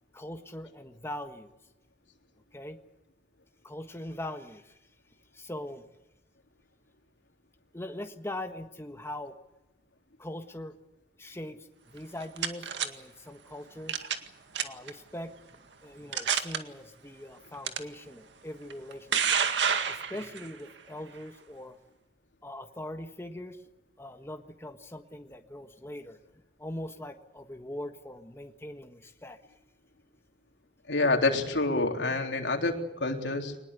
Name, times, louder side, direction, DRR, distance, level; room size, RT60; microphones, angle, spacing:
voice 1, 0.1-1.5 2.5-2.8 3.6-4.8 5.3-5.8 7.7-9.3 10.2-10.8 11.2-14.0 14.6-15.3 15.8-19.4 19.9-21.8 22.4-23.6 24.0-26.2 26.6-29.4, left 1 dB, 15° left, 5 dB, 1.5 m, -41 dB
sound 1, 12.0-12.9 13.9-14.3 14.6-14.9 15.5-15.6 16.1-16.6 17.7-17.8 18.7-20.5, right 7 dB, 85° right, 2.0 m, -28 dB
voice 2, 30.9-33.6, left 2 dB, 85° left, 3 dB, 3.6 m, -27 dB
24.0 x 20.0 x 8.2 m, 0.92 s
head